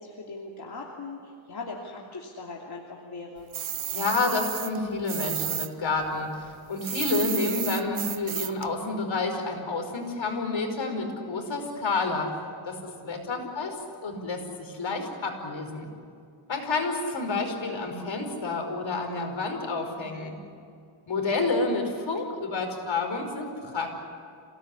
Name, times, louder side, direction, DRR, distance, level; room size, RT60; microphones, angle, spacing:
voice 1, 0.0-3.5 13.1-13.5, left 3 dB, 50° left, -2 dB, 3.0 m, -40 dB
sound 1, 3.5-5.7 6.0-8.7, right 11 dB, 90° right, 1.0 m, -32 dB
voice 2, 3.9-12.3 12.7-12.8 13.0-13.8 14.0-15.9 16.5-20.3 21.1-23.9, left 3 dB, 65° left, 4 dB, 5.2 m, -29 dB
28.0 x 18.0 x 10.0 m, 2.3 s
wide cardioid pair, 105°, 48 cm